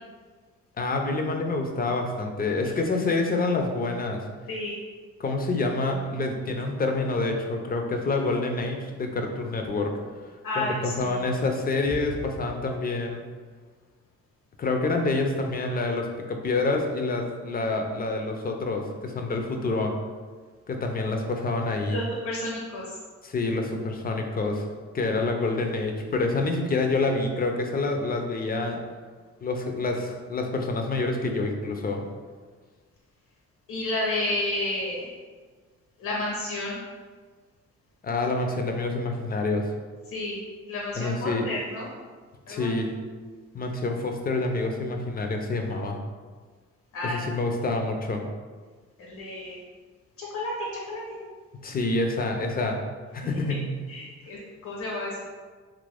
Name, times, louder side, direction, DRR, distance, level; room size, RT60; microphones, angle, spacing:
voice 1, 0.8-4.2 5.2-10.0 10.6-13.2 14.6-19.9 20.7-22.0 23.2-24.7 24.9-28.8 29.4-32.0 38.0-39.7 41.0-41.5 42.5-42.9 43.5-46.0 47.0-48.2 51.5-52.8 53.1-53.7, left 3 dB, 30° left, 3 dB, 0.5 m, -27 dB
voice 2, 10.4-11.2 21.9-23.0 33.7-35.1 36.0-36.8 40.1-40.4 40.7-41.9 42.5-42.7 46.9-47.2 49.0-49.6 50.2-51.2 53.5-53.6 53.9-55.2, left 1 dB, 70° left, -3 dB, 0.8 m, -31 dB
2.9 x 2.5 x 3.3 m, 1.5 s
cardioid pair, 90°, 30 cm